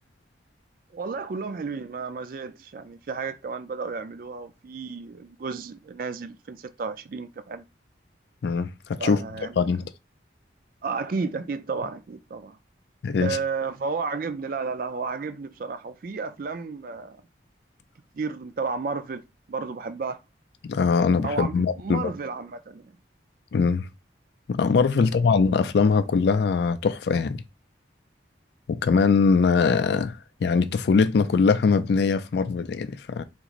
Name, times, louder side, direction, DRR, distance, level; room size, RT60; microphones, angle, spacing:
voice 1, 0.9-7.6 9.0-9.7 10.8-12.6 13.2-17.2 18.1-19.2 19.5-20.2 21.2-22.9 25.0-25.2, right 4 dB, 50° right, 0.3 m, -32 dB
voice 2, 8.4-9.2 9.6-9.9 13.0-13.4 20.6-22.1 23.5-23.8 24.5-27.4 28.7-30.1 30.4-33.2, left 5 dB, 65° left, 0.3 m, -22 dB
3.6 x 2.5 x 3.0 m
head